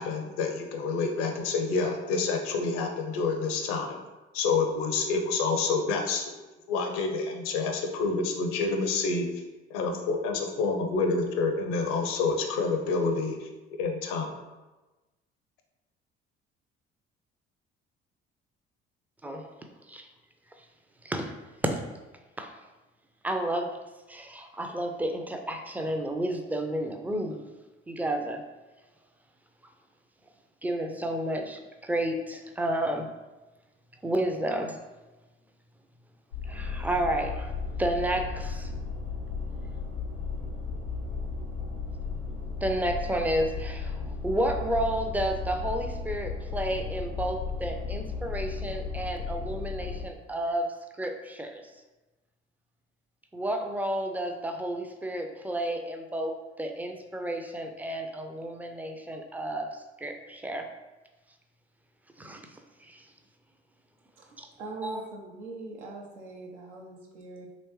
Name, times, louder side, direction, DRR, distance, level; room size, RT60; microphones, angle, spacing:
voice 1, 0.0-4.0 4.3-6.3 6.7-9.3 9.7-13.5 13.8-14.4, left 4 dB, 65° left, 4 dB, 0.6 m, -28 dB
voice 2, 19.2-19.5 19.9-20.1 21.0-21.3 21.6-21.8 22.4-22.5 23.2-23.8 24.1-27.4 27.9-28.4 30.6-33.1 34.0-34.8 36.5-37.5 37.8-38.7 42.6-51.6 53.3-59.7 60.0-60.7 62.2-62.4 62.8-63.0 64.4-64.5 64.8-65.0, right 1 dB, 5° right, 4 dB, 0.4 m, -31 dB
sound 1, 36.3-50.0, left 4 dB, 85° left, 1.2 m, -35 dB
voice 3, 64.6-67.5, right 2 dB, 85° right, -1 dB, 0.6 m, -41 dB
3.0 x 3.0 x 3.0 m, 1.1 s
figure-of-eight pair, 50°, 34 cm